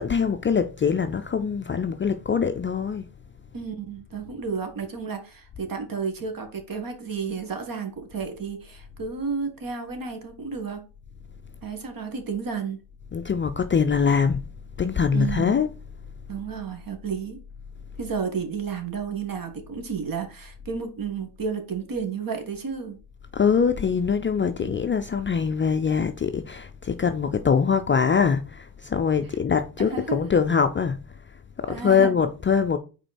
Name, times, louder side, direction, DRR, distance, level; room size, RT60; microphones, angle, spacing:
voice 1, 0.0-3.0 13.1-14.4 14.8-15.7 23.3-31.0 31.6-32.8, left 6 dB, 25° left, 0.5 m, -23 dB
voice 2, 3.5-10.8 11.6-12.8 15.1-15.5 16.3-17.4 18.0-23.0 24.6-24.8 29.2-29.4 29.8-30.3 31.7-32.1, right 5 dB, 45° right, 2.0 m, -32 dB
5.0 x 4.4 x 4.4 m
supercardioid pair, 70°, 49 cm